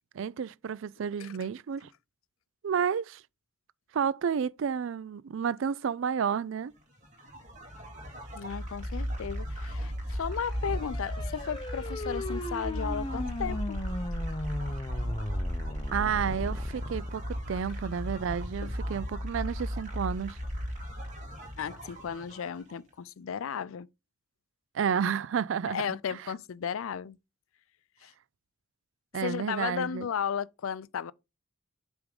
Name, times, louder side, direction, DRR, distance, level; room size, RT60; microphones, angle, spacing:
voice 1, 0.1-1.9 2.6-3.2 3.9-6.7 15.9-20.4 24.7-26.0 29.1-30.1, right 7 dB, 60° right, 0.3 m, -31 dB
sound 1, 7.0-22.7, equal, 35° right, 2.2 m, -36 dB
voice 2, 8.4-13.8 18.6-18.7 21.6-23.9 25.7-27.2 28.0-28.1 29.2-31.1, left 7 dB, 75° left, 0.4 m, -35 dB
sound 2, 10.2-17.1, left 1 dB, 25° left, 0.7 m, -38 dB
8.0 x 3.5 x 5.2 m
head